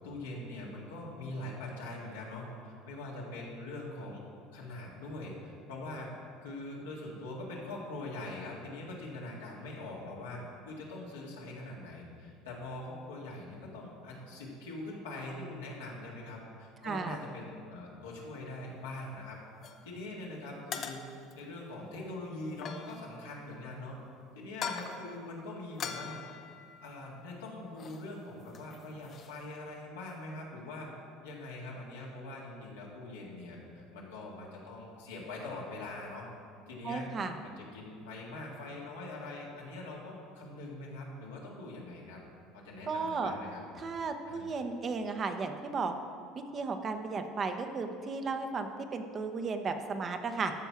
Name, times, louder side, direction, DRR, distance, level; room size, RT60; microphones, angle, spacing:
voice 1, 0.0-4.2 4.5-6.1 6.4-19.4 19.9-21.0 21.3-24.0 24.4-26.2 26.8-30.9 31.2-36.3 36.7-37.1 37.4-42.2 42.5-43.6 44.3-44.5, left 2 dB, 90° left, -4 dB, 1.9 m, -43 dB
voice 2, 16.8-17.2 36.8-37.4 42.9-43.3 43.8-45.9 46.5-50.5, right 4 dB, 40° right, 7 dB, 0.9 m, -34 dB
sound 1, 19.6-19.8 20.7-21.4 22.5-23.2 24.5-25.1 25.8-27.3 27.8-28.1 28.3-29.4, left 6 dB, 45° left, 0.7 m, -42 dB
13.0 x 4.6 x 5.8 m, 2.4 s
hypercardioid pair, 80°, 0 cm